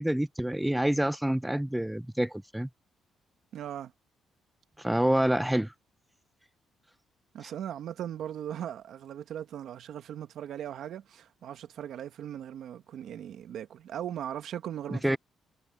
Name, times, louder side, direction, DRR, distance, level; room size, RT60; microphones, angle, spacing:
voice 1, 0.0-2.7 4.8-5.7 14.9-15.2, right 1 dB, 5° right, 0.4 m, -27 dB
voice 2, 3.5-3.9 7.3-15.2, right 10 dB, 75° right, 1.6 m, -39 dB
cardioid pair, 90°, 0 cm